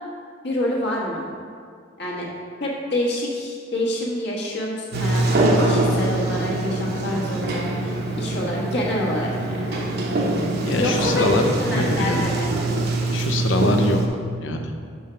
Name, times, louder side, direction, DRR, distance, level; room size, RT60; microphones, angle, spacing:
voice 1, 0.4-1.3 2.0-2.3 2.6-9.9 10.8-12.5, left 1 dB, 65° left, -3 dB, 1.4 m, -27 dB
Sliding door, 4.9-14.1, right 2 dB, 55° right, 0.8 m, -23 dB
voice 2, 10.7-12.3 13.1-14.0 14.4-14.7, left 2 dB, 80° left, 4 dB, 0.7 m, -23 dB
5.4 x 5.1 x 5.6 m, 2.2 s
head